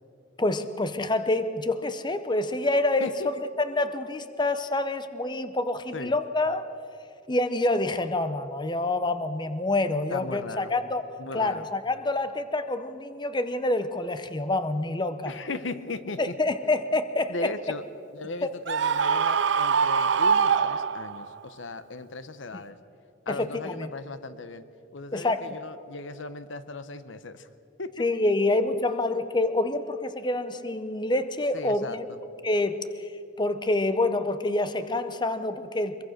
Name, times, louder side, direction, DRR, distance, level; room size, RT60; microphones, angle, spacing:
voice 1, 0.4-3.1 3.6-6.7 7.3-11.0 11.3-15.3 16.2-17.5 18.4-18.5 23.3-23.9 25.1-25.4 28.0-32.0 32.4-33.1 33.4-36.0, left 2 dB, 25° left, 11 dB, 0.8 m, -27 dB
voice 2, 3.0-3.3 5.9-6.2 10.1-10.7 11.2-11.7 15.2-16.4 17.3-17.8 18.1-22.8 23.3-24.6 24.9-27.5 27.8-28.1 31.5-32.2, left 3 dB, 75° left, 13 dB, 1.0 m, -37 dB
Screaming, 18.7-21.4, right 6 dB, 65° right, 0.5 m, -23 dB
23.5 x 22.5 x 6.6 m, 2.7 s
head